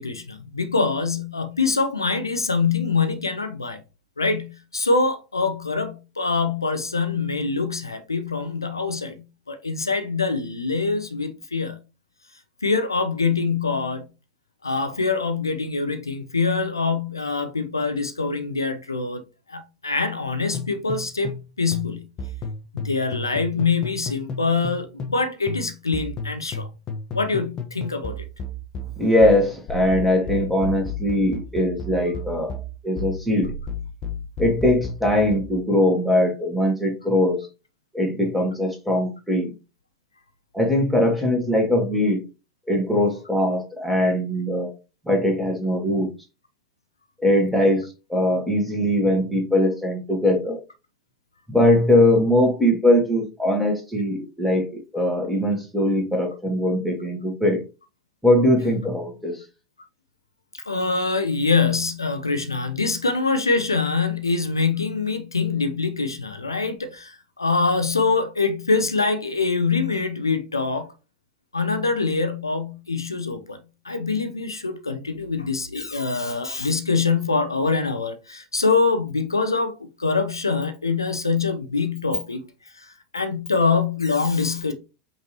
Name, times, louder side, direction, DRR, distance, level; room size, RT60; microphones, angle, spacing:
voice 1, 0.0-3.8 4.2-11.8 12.6-14.1 14.6-19.2 19.5-22.1 22.7-26.7 27.1-28.3 60.5-70.9 71.5-73.6 73.8-82.5 82.7-84.7, left 4 dB, 85° left, 0.6 m, -24 dB
sound 1, 20.5-21.5 21.7-25.2 25.5-35.5, left 4 dB, 35° left, 0.7 m, -32 dB
voice 2, 29.0-33.5 34.4-37.5 37.9-39.5 40.5-42.3 42.7-44.7 45.0-46.1 47.2-50.6 51.5-57.6 58.2-59.4, left 1 dB, ahead, 1.6 m, -21 dB
5.3 x 2.9 x 3.0 m
figure-of-eight pair, 85°, 2 cm